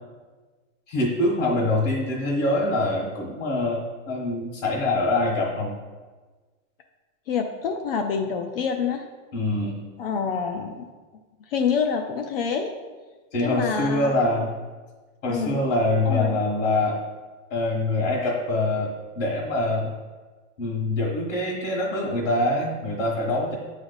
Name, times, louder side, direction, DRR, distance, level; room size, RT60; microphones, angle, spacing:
voice 1, 0.9-5.7 9.3-9.8 13.3-14.5 15.2-17.0 17.5-19.9 20.6-23.5, left 2 dB, 65° left, -4 dB, 1.5 m, -24 dB
voice 2, 7.3-9.0 10.0-10.8 11.5-12.7 13.4-14.2 15.3-15.6 16.0-16.4, left 6 dB, 50° left, 5 dB, 0.5 m, -27 dB
8.5 x 3.2 x 4.0 m, 1.3 s
supercardioid pair, 175°, 39 cm